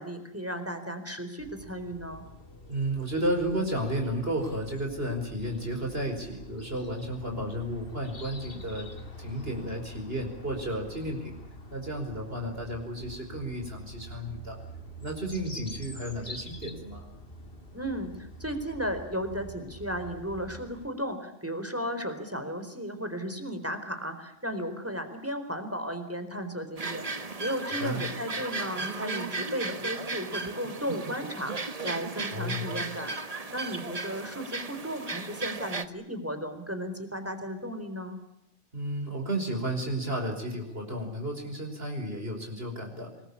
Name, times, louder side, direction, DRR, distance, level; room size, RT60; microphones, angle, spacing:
voice 1, 0.0-2.2 17.7-38.2, equal, 10° right, 8 dB, 4.2 m, -35 dB
sound 1, 1.4-20.9, equal, 50° left, 2.6 m, -46 dB
voice 2, 2.7-8.9 9.2-11.4 11.7-14.6 15.0-17.0 27.7-28.0 32.3-32.6 38.7-43.1, right 1 dB, 50° right, 2 dB, 5.4 m, -32 dB
sound 2, 26.8-35.8, right 3 dB, 30° right, 1.3 m, -35 dB
27.5 x 20.5 x 8.5 m, 0.84 s
omnidirectional pair, 1.2 m